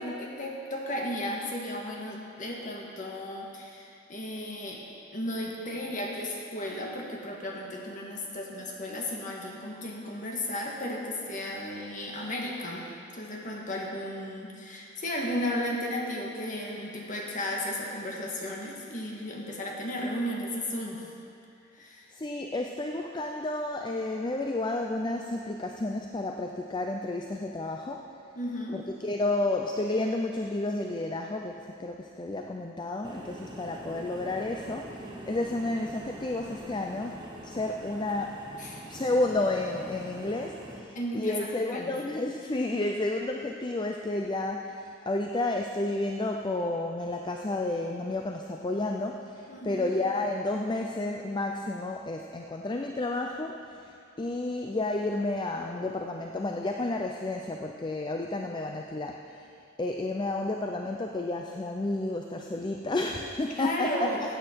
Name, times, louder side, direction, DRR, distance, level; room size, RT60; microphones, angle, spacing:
voice 1, 0.0-4.8 5.1-12.9 13.1-21.0 21.7-22.1 28.4-28.8 38.6-38.8 41.0-42.0 49.5-49.9 63.6-64.2, left 1 dB, 40° left, -1 dB, 1.7 m, -34 dB
voice 2, 22.1-28.1 28.7-38.4 38.9-53.9 54.2-59.5 59.8-64.1, left 2 dB, 25° left, 2 dB, 0.4 m, -31 dB
Gas pumping, 33.0-40.8, right 1 dB, 25° right, 1.1 m, -44 dB
15.5 x 8.4 x 4.6 m, 2.5 s
head